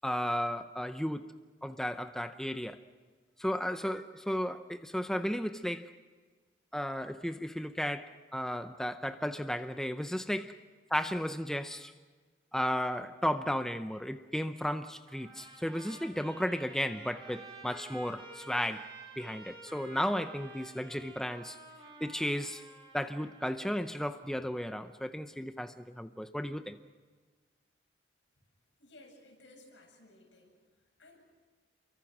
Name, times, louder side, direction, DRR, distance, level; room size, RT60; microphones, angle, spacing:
voice 1, 0.0-1.3 1.6-2.8 3.4-5.9 6.7-10.6 10.9-11.9 12.5-18.9 19.2-21.6 22.0-22.6 22.9-26.8, equal, 5° left, 0.7 m, -34 dB
Trumpet, 15.1-23.7, right 3 dB, 25° right, 4.6 m, -51 dB
voice 2, 28.8-30.6 31.0-31.3, left 2 dB, 90° left, 7.9 m, -57 dB
29.5 x 23.5 x 6.1 m
head